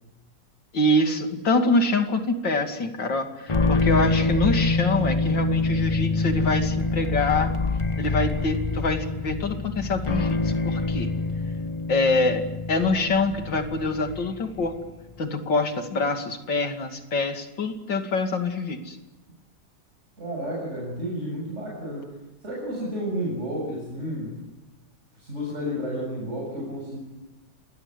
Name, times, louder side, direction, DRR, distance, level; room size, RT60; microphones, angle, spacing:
voice 1, 0.7-7.5 8.0-11.1 11.9-14.8 15.2-19.0, left 2 dB, 85° left, 5 dB, 3.2 m, -25 dB
sound 1, 3.5-14.9, left 3 dB, 30° left, 0.5 m, -26 dB
voice 2, 20.2-22.1 22.4-24.5 25.2-27.0, equal, 40° right, -3 dB, 8.0 m, -31 dB
27.5 x 20.5 x 9.8 m, 1.0 s
omnidirectional pair, 1.9 m